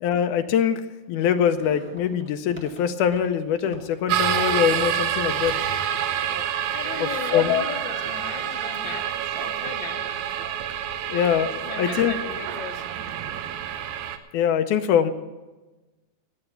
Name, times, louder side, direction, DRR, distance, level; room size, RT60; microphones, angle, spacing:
voice 1, 0.0-0.8 1.1-5.5 7.0-7.6 11.1-11.5 11.8-12.1 14.3-15.1, left 9 dB, 85° left, 9 dB, 2.1 m, -23 dB
sound 1, 1.5-4.4 4.7-6.0, equal, 10° left, 0.5 m, -45 dB
sound 2, 4.1-14.2, right 9 dB, 75° right, 2.0 m, -28 dB
voice 2, 6.7-10.1 11.4-12.8, left 7 dB, 65° left, 4 dB, 1.2 m, -37 dB
11.0 x 8.8 x 9.2 m, 1.2 s
omnidirectional pair, 3.6 m